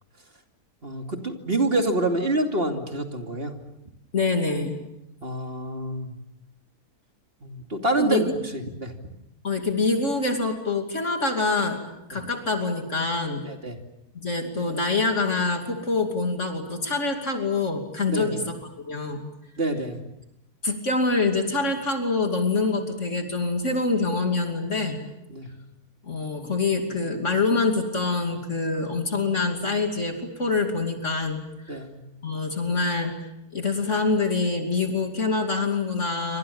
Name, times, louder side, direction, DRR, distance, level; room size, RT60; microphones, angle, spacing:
voice 1, 0.8-3.5 5.2-6.2 7.4-8.9 13.4-13.8 18.1-18.4 19.6-20.0 25.3-25.5 31.7-32.0, right 2 dB, 40° right, 4 dB, 3.0 m, -27 dB
voice 2, 4.1-4.8 8.0-8.2 9.4-11.8 12.1-13.5 14.1-18.6 18.8-19.2 20.6-25.0 26.0-31.8 32.2-33.2 33.5-36.4, left 3 dB, 50° left, 4 dB, 3.1 m, -25 dB
28.0 x 26.0 x 7.2 m, 0.86 s
omnidirectional pair, 1.6 m